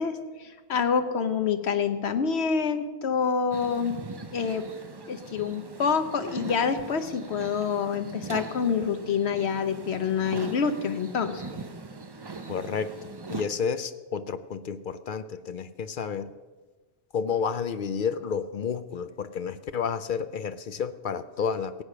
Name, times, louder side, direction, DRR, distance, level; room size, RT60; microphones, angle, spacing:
voice 1, 0.0-4.0 4.3-4.7 5.1-11.4, left 6 dB, 75° left, 9 dB, 1.2 m, -27 dB
sound 1, 3.5-13.5, right 3 dB, 25° right, 0.6 m, -40 dB
voice 2, 12.5-16.3 17.1-21.8, left 6 dB, 55° left, 12 dB, 0.7 m, -31 dB
17.0 x 8.4 x 6.0 m, 1.3 s
omnidirectional pair, 1.1 m